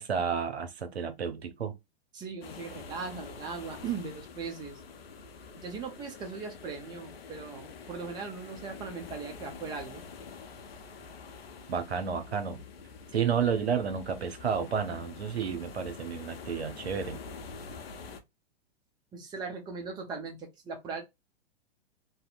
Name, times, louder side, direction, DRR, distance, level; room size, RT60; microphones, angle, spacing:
voice 1, 0.0-1.8 11.7-12.6 13.1-17.2, right 7 dB, 80° right, 0.7 m, -31 dB
voice 2, 2.1-4.8 5.6-10.0 19.1-21.0, right 5 dB, 15° right, 0.5 m, -39 dB
sound 1, 2.4-18.2, left 5 dB, 70° left, 0.7 m, -46 dB
2.7 x 2.1 x 2.4 m
figure-of-eight pair, 110°, 32 cm